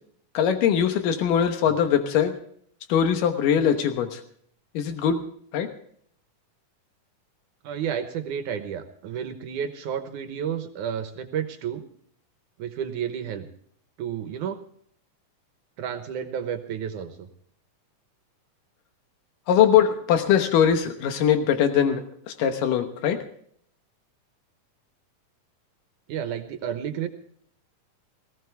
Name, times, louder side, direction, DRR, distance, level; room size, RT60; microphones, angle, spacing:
voice 1, 0.3-2.3 2.9-4.2 4.7-5.2 5.5-5.7 19.5-23.2, left 8 dB, 90° left, 7 dB, 2.8 m, -21 dB
voice 2, 7.6-11.8 12.6-13.5 14.0-14.6 15.8-17.3 26.1-27.1, right 8 dB, 75° right, 7 dB, 2.5 m, -31 dB
19.0 x 17.0 x 3.4 m, 0.63 s
omnidirectional pair, 3.7 m